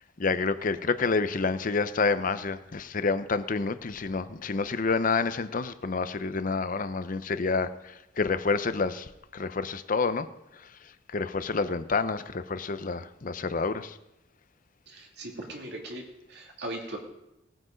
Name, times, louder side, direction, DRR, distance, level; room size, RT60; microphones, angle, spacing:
voice 1, 0.0-10.3 10.5-14.0, left 4 dB, 45° left, 12 dB, 0.7 m, -29 dB
voice 2, 14.9-17.0, right 1 dB, 65° right, 0 dB, 2.5 m, -39 dB
18.5 x 7.8 x 5.1 m, 0.91 s
head